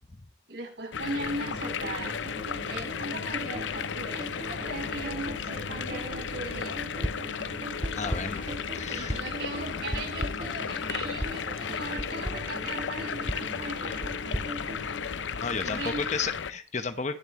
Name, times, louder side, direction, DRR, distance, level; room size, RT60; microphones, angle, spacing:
voice 1, 0.5-2.2 2.6-6.8 8.9-14.1 15.6-16.1, right 2 dB, 65° right, 0 dB, 6.3 m, -38 dB
sound 1, 0.9-16.5, left 6 dB, 85° left, 0.6 m, -34 dB
sound 2, 1.2-16.2, right 1 dB, 45° right, 1.8 m, -42 dB
sound 3, 7.0-7.4 7.8-8.5 9.1-9.4 9.9-10.6 11.2-11.5 12.0-12.5 13.3-15.3, equal, 5° right, 0.5 m, -36 dB
voice 2, 7.9-9.2 15.4-17.2, left 4 dB, 40° left, 10 dB, 0.9 m, -33 dB
20.0 x 7.5 x 3.1 m, 0.33 s
head